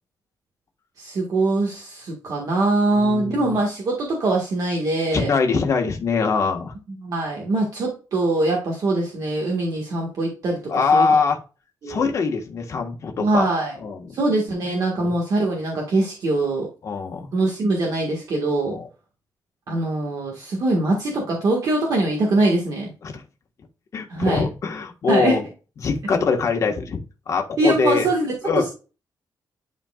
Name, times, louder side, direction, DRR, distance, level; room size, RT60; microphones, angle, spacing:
voice 1, 1.0-5.3 7.0-11.1 11.8-12.1 13.2-13.7 14.1-16.7 17.3-18.8 19.7-22.9 24.1-24.4 25.1-25.4 27.6-28.7, right 2 dB, 55° right, -1 dB, 1.7 m, -23 dB
voice 2, 2.9-3.5 5.1-6.7 10.7-11.4 11.9-13.5 13.8-14.2 15.0-15.1 16.8-17.3 18.7-18.8 23.0-23.2 23.9-25.5 25.8-28.1 28.4-28.7, left 5 dB, 45° left, 3 dB, 1.5 m, -23 dB
11.5 x 4.4 x 2.4 m, 0.33 s
wide cardioid pair, 180°, 7 cm